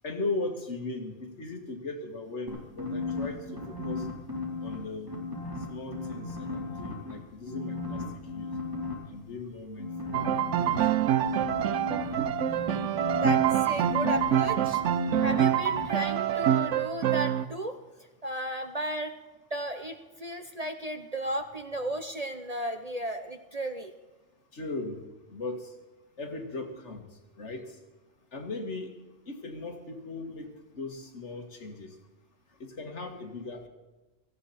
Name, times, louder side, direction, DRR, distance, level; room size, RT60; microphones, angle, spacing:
voice 1, 0.0-4.1 4.6-5.1 5.7-8.0 8.3-8.5 9.1-10.8 24.5-25.8 26.2-27.8 28.3-28.9 29.3-32.0 32.6-33.7, left 3 dB, 60° left, 4 dB, 2.1 m, -38 dB
sound 1, 2.5-4.7 5.1-7.1 7.5-8.9 9.8-15.4 15.7-15.9, left 3 dB, 15° right, 3.8 m, -35 dB
Piano, 10.1-17.4, right 11 dB, 75° right, 1.0 m, -26 dB
voice 2, 13.2-17.8 18.2-19.1 19.5-23.9, right 1 dB, 35° right, 7 dB, 0.8 m, -34 dB
17.5 x 15.0 x 4.2 m, 1.2 s
omnidirectional pair, 1.3 m